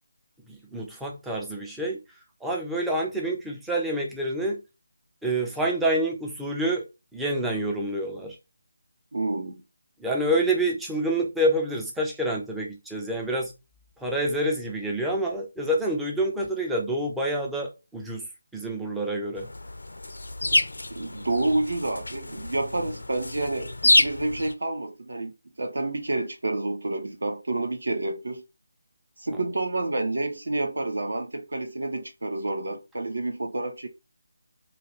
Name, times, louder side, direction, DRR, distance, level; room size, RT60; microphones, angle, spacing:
voice 1, 0.5-2.0 2.4-4.6 5.2-6.8 7.1-8.4 10.0-13.5 14.0-18.2 18.5-19.5, right 1 dB, 5° right, 0.4 m, -27 dB
voice 2, 9.1-9.6 20.9-28.4 29.2-33.9, right 2 dB, 60° right, 0.6 m, -29 dB
sound 1, 19.4-24.5, left 2 dB, 65° left, 0.3 m, -27 dB
2.3 x 2.3 x 3.4 m
figure-of-eight pair, 155°, 0 cm